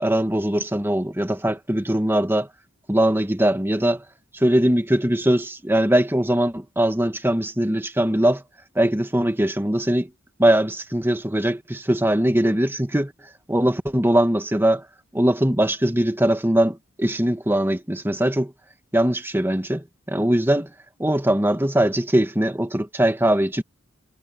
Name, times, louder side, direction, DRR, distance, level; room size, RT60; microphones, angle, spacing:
voice 1, 0.0-2.5 2.9-4.0 4.3-8.4 8.8-10.1 10.4-13.1 13.5-14.8 15.1-18.5 18.9-20.7 21.0-23.6, right 1 dB, 10° right, 1.7 m, -21 dB
head